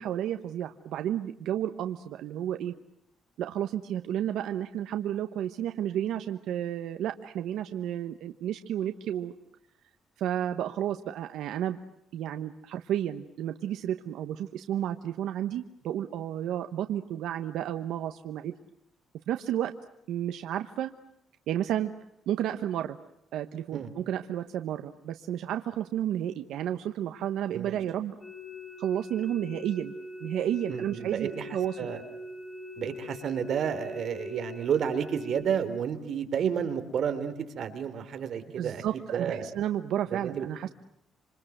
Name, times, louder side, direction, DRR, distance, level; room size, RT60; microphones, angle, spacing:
voice 1, 0.0-2.7 3.4-9.3 10.2-11.8 12.1-18.6 19.3-19.7 20.1-20.9 21.5-21.9 22.3-23.0 23.3-28.2 28.8-29.9 30.2-31.9 38.6-40.7, right 11 dB, 85° right, 8 dB, 1.1 m, -32 dB
sound 1, 28.2-35.4, left 2 dB, 20° left, 5.0 m, -42 dB
voice 2, 30.7-31.5 31.8-32.0 32.8-38.8 39.1-39.5 40.1-40.4, right 8 dB, 55° right, 9 dB, 3.3 m, -31 dB
27.0 x 26.5 x 8.0 m, 0.80 s
cardioid pair, 140°, 0 cm